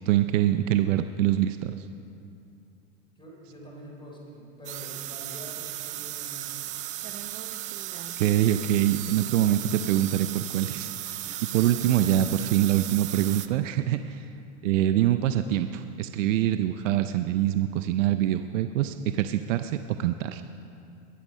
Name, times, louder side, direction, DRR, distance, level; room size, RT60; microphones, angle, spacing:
voice 1, 0.1-1.9 8.2-10.9 11.5-14.3 14.6-20.4, right 12 dB, 75° right, 10 dB, 0.6 m, -24 dB
voice 2, 3.2-6.7 11.6-12.3, equal, 15° left, -2 dB, 3.6 m, -46 dB
sound 1, 4.6-13.5, right 13 dB, 20° right, 0.3 m, -36 dB
21.5 x 7.2 x 5.4 m, 2.5 s
hypercardioid pair, 120°, 38 cm